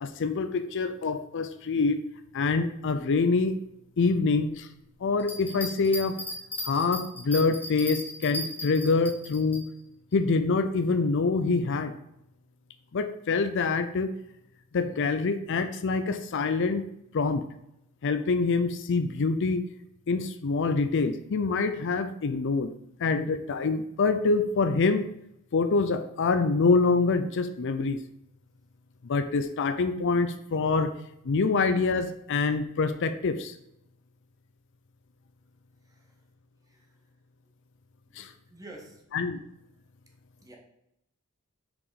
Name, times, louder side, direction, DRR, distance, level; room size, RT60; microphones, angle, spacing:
voice 1, 0.0-2.0 2.3-3.5 4.0-4.7 5.0-6.2 6.6-9.6 10.1-11.9 12.9-14.1 14.7-16.8 17.1-17.4 18.0-19.6 20.1-22.7 23.0-25.1 25.5-28.0 29.0-30.9 31.2-33.5 38.2-38.3 39.1-39.4, left 4 dB, 60° left, 9 dB, 0.5 m, -25 dB
sound 1, 5.2-9.6, left 1 dB, 10° left, 1.3 m, -36 dB
voice 2, 38.2-39.0 40.4-40.6, right 2 dB, 15° right, 0 dB, 1.2 m, -48 dB
5.9 x 4.9 x 4.1 m, 0.81 s
head